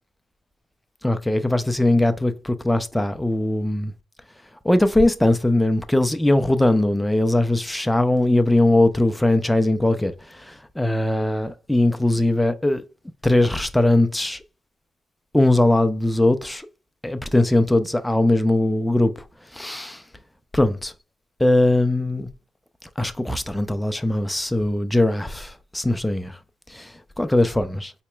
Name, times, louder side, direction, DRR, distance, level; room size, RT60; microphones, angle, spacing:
voice 1, 1.0-3.9 4.6-12.8 13.2-14.4 15.3-16.7 17.0-19.1 19.5-20.0 20.5-20.9 21.4-22.3 23.0-26.4 26.7-27.9, left 1 dB, 5° left, 0.4 m, -20 dB
4.2 x 2.9 x 2.2 m
cardioid pair, 90°, 0 cm